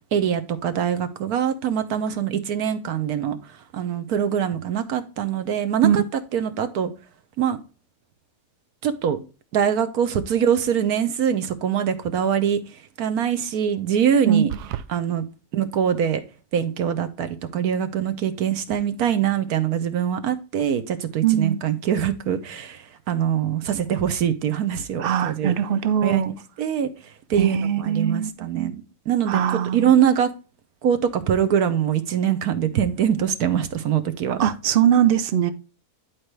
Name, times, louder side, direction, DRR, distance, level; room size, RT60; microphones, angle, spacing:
voice 1, 0.1-3.4 3.7-6.0 6.3-6.9 7.4-7.6 8.8-9.2 9.5-12.6 13.0-14.5 14.9-15.2 15.5-16.2 16.5-25.5 26.0-26.3 26.6-26.9 27.3-28.8 29.1-29.4 29.7-30.3 30.8-34.4, right 9 dB, 70° right, 1.3 m, -23 dB
sound 1, 14.5-14.9, right 11 dB, 90° right, 1.1 m, -31 dB
voice 2, 21.2-21.6 25.0-26.3 27.4-28.7 29.3-29.9 34.4-35.5, right 9 dB, 55° right, 0.6 m, -21 dB
10.5 x 4.5 x 3.2 m
omnidirectional pair, 1.6 m